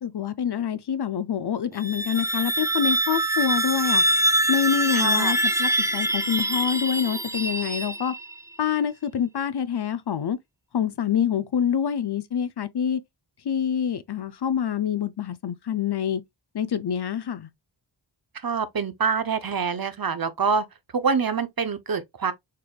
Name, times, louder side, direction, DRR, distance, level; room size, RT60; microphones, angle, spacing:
voice 1, 0.0-4.0 4.5-8.1 8.6-10.4 10.7-13.0 13.4-16.2 16.5-17.5, left 8 dB, 60° left, 0.5 m, -26 dB
sound 1, 1.7-8.4, right 1 dB, 5° right, 0.4 m, -24 dB
voice 2, 4.9-5.3 18.4-20.6 20.9-22.3, right 5 dB, 50° right, 0.7 m, -25 dB
6.5 x 3.4 x 2.2 m
wide cardioid pair, 65°, 46 cm